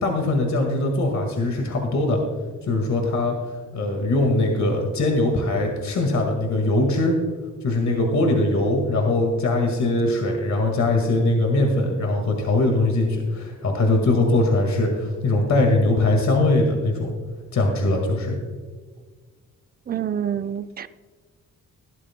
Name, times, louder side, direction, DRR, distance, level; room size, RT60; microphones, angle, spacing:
voice 1, 0.0-2.2 2.6-3.3 3.7-7.1 7.6-17.1 17.5-18.4, left 2 dB, 65° left, 2 dB, 1.9 m, -21 dB
voice 2, 19.9-20.9, right 9 dB, 30° right, 12 dB, 0.4 m, -27 dB
16.5 x 12.0 x 2.2 m, 1.5 s
cardioid pair, 120°, 31 cm